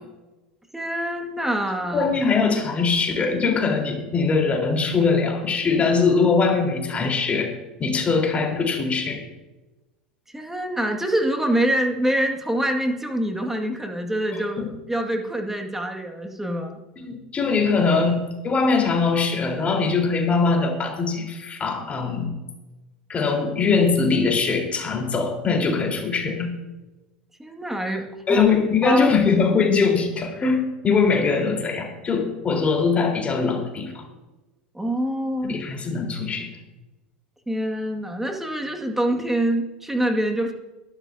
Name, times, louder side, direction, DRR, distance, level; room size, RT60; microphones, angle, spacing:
voice 1, 0.7-2.3 10.3-16.8 27.4-28.5 28.8-29.1 34.7-35.6 37.5-40.5, right 1 dB, 5° right, 3 dB, 2.0 m, -25 dB
voice 2, 1.9-7.5 7.8-9.2 14.6-14.7 17.0-18.2 18.4-22.3 23.1-26.5 28.3-34.1 35.4-36.5, left 4 dB, 25° left, 1 dB, 4.0 m, -22 dB
22.5 x 12.0 x 2.8 m, 1.1 s
hypercardioid pair, 80°, 5 cm